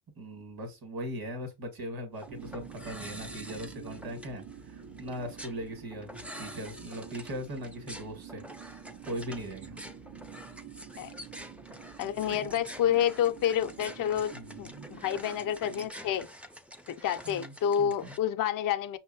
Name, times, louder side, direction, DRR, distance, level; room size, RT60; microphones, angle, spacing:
voice 1, 0.2-6.1 6.4-8.4 9.0-9.8 12.3-12.4 14.3-14.9 17.2-17.5 17.8-18.1, equal, 50° right, 1.6 m, -39 dB
sound 1, 2.1-18.2, equal, 5° right, 0.5 m, -47 dB
sound 2, 2.3-15.9, right 7 dB, 70° right, 1.1 m, -48 dB
voice 2, 12.0-14.3 14.6-16.3 16.9-19.0, left 9 dB, 45° left, 0.5 m, -29 dB
5.7 x 2.7 x 2.7 m
cardioid pair, 75°, 46 cm